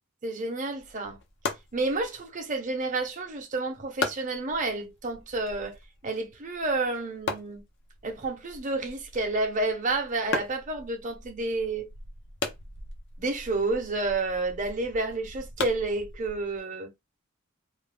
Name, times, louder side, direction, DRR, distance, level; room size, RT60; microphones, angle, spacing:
voice 1, 0.2-1.2 1.7-5.8 6.0-7.6 8.0-11.9 13.2-16.9, right 2 dB, 40° right, 0.7 m, -30 dB
sound 1, 0.7-16.6, left 3 dB, 60° left, 0.6 m, -39 dB
2.5 x 2.2 x 3.3 m
head